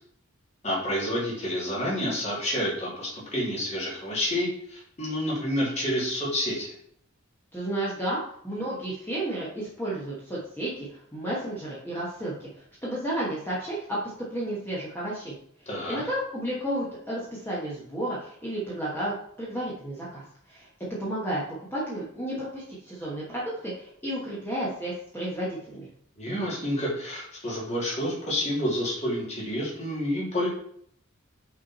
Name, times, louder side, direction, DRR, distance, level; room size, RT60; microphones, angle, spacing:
voice 1, 0.6-6.7 15.7-16.0 26.2-30.5, equal, 35° left, -6 dB, 2.7 m, -29 dB
voice 2, 7.5-10.7 11.1-12.5 12.8-14.0 14.3-15.4 15.9-19.1 19.4-20.7 21.0-21.4 21.7-25.9, right 1 dB, 10° left, -7 dB, 1.3 m, -32 dB
6.0 x 4.4 x 4.3 m, 0.66 s
head